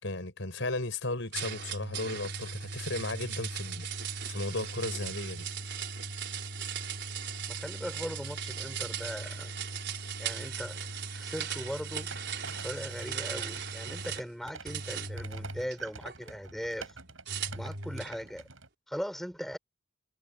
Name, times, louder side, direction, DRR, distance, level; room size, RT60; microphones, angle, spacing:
voice 1, 0.0-5.5, left 2 dB, 70° left, 5.4 m, -35 dB
sound 1, 1.3-14.3 14.7-16.2 17.3-18.2, right 6 dB, 60° right, 5.3 m, -37 dB
voice 2, 7.5-9.5 10.2-10.9 11.1-12.1 12.6-16.9 17.5-18.4 18.9-19.6, equal, ahead, 4.9 m, -39 dB
sound 2, 11.9-18.7, right 4 dB, 85° right, 7.6 m, -47 dB
head